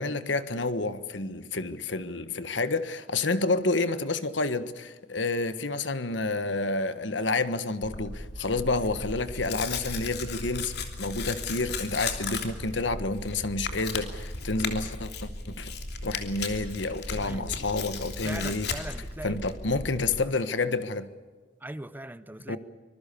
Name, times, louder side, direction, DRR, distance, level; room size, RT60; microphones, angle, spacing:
voice 1, 0.0-15.3 15.6-15.7 16.0-18.7 19.2-21.1 22.5-22.6, left 3 dB, 80° left, 1.4 m, -29 dB
Tearing, 7.8-20.2, left 4 dB, 60° left, 3.1 m, -36 dB
voice 2, 17.2-17.6 18.2-19.4 21.6-22.6, right 1 dB, 10° right, 0.7 m, -40 dB
25.0 x 22.0 x 7.0 m
head